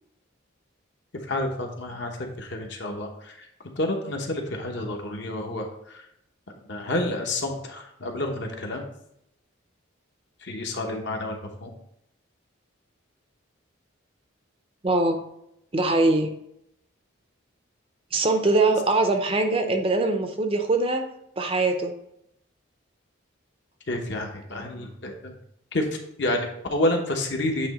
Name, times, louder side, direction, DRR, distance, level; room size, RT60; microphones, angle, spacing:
voice 1, 1.3-3.5 3.8-6.0 6.7-8.8 10.4-11.7 23.9-25.3 25.7-25.9 26.2-27.7, left 1 dB, 55° left, 2 dB, 1.0 m, -29 dB
voice 2, 14.8-15.2 15.7-16.3 18.1-21.1 21.4-21.9, right 2 dB, 30° right, 6 dB, 0.5 m, -22 dB
8.7 x 3.1 x 4.1 m, 0.76 s
head